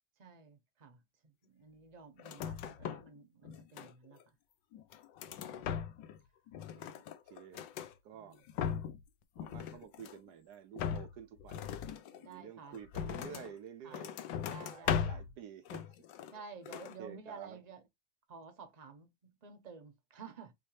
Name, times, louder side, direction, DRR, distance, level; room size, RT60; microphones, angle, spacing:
voice 1, 0.2-1.0 1.4-4.2 5.2-5.7 6.8-7.0 8.2-8.3 12.2-12.8 13.8-14.0 14.4-15.2 16.3-17.8 18.3-20.5, right 5 dB, 35° right, 0.6 m, -52 dB
sound 1, 2.2-3.2 3.4-4.2 4.7-6.2 6.5-7.9 8.3-9.1 9.4-10.3 10.8-13.5 13.9-15.3 15.7-16.4 16.7-17.0, left 8 dB, 75° left, 1.3 m, -39 dB
voice 2, 7.3-7.7 8.0-8.4 9.4-11.7 12.1-14.3 14.6-15.8 16.7-17.6, right 8 dB, 70° right, 1.0 m, -51 dB
6.4 x 2.7 x 3.1 m
omnidirectional pair, 2.1 m